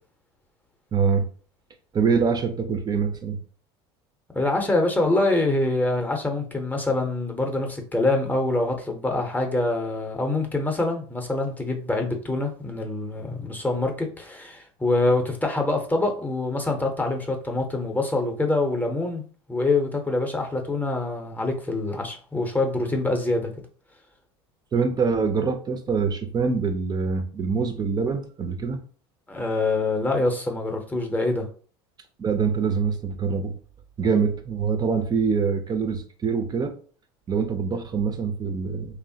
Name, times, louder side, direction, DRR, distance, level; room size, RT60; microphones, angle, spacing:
voice 1, 0.9-1.2 1.9-3.4 24.7-28.8 32.2-33.6 34.0-36.7 37.3-39.0, right 5 dB, 30° right, 0.5 m, -24 dB
voice 2, 4.3-19.2 19.5-23.5 29.3-31.5, left 2 dB, 10° left, 0.7 m, -25 dB
3.0 x 2.0 x 2.7 m
hypercardioid pair, 85°, 14 cm